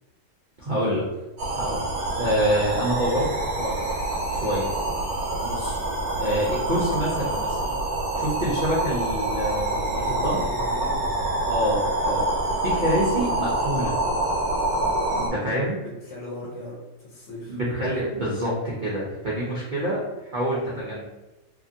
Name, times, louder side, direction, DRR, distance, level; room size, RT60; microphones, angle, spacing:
voice 1, 0.6-1.0 1.5-1.8 2.2-3.9 4.3-4.7 5.4-5.8 6.1-7.8 8.1-10.4 11.5-12.3 12.6-13.9 15.2-15.8 17.5-21.0, equal, 50° right, -6 dB, 0.6 m, -26 dB
sound 1, 1.4-15.3, right 2 dB, 90° right, 1.1 m, -26 dB
voice 2, 4.3-4.6 10.0-11.2 15.7-17.6 19.7-19.9, left 1 dB, 60° left, -6 dB, 1.1 m, -38 dB
2.9 x 2.6 x 2.6 m, 1.0 s
omnidirectional pair, 1.5 m